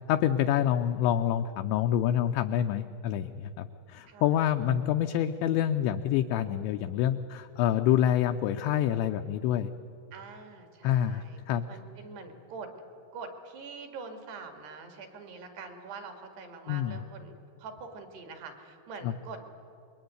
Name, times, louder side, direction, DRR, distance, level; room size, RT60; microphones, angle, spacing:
voice 1, 0.1-9.7 10.8-11.7 16.7-17.0 19.0-19.1, left 11 dB, 80° left, 6 dB, 2.7 m, -27 dB
voice 2, 4.1-4.4 10.1-12.7 13.1-19.4, right 4 dB, 60° right, 5 dB, 3.9 m, -44 dB
27.0 x 22.5 x 9.5 m, 2.7 s
omnidirectional pair, 5.8 m